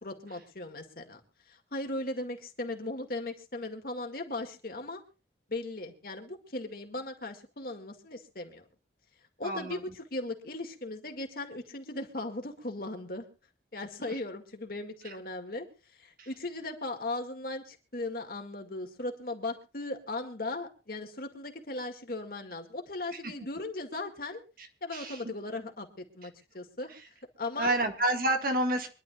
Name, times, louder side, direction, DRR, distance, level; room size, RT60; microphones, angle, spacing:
voice 1, 0.0-1.2 1.5-5.0 5.5-8.6 9.4-13.2 13.7-15.7 16.0-24.4 24.8-26.9 27.4-27.7, left 2 dB, 55° left, 4 dB, 2.1 m, -37 dB
voice 2, 9.4-9.8 15.0-15.2 16.2-16.3 23.2-23.3 24.9-25.2 27.6-28.9, right 1 dB, 55° right, 5 dB, 1.7 m, -29 dB
25.0 x 11.5 x 2.4 m, 0.33 s
head